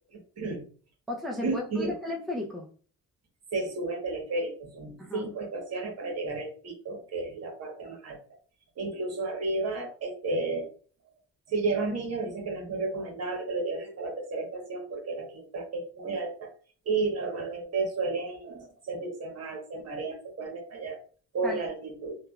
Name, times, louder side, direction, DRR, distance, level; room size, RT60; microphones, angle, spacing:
voice 1, 0.1-0.6 1.4-2.0 3.5-8.2 8.8-10.7 11.5-16.5 16.8-21.0 21.3-22.2, right 3 dB, 55° right, 1.1 m, -32 dB
voice 2, 1.1-2.7 5.0-5.3 21.4-21.7, left 1 dB, ahead, 0.5 m, -35 dB
3.3 x 2.3 x 2.2 m
cardioid pair, 90°, 30 cm